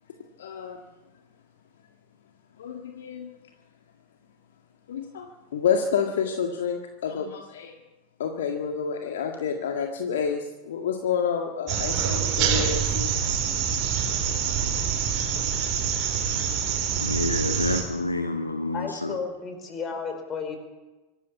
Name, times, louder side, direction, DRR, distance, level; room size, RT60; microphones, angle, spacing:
voice 1, 0.4-0.8 2.6-3.3 4.9-7.8 8.2-13.1, left 7 dB, 60° left, 3 dB, 1.9 m, -29 dB
sound 1, 11.7-17.8, right 7 dB, 40° right, 4.7 m, -26 dB
voice 2, 17.0-19.1, left 2 dB, 80° left, 6 dB, 1.5 m, -28 dB
voice 3, 18.7-20.6, left 5 dB, 25° left, 6 dB, 5.0 m, -33 dB
24.5 x 13.0 x 8.6 m, 1.1 s
figure-of-eight pair, 90°, 0 cm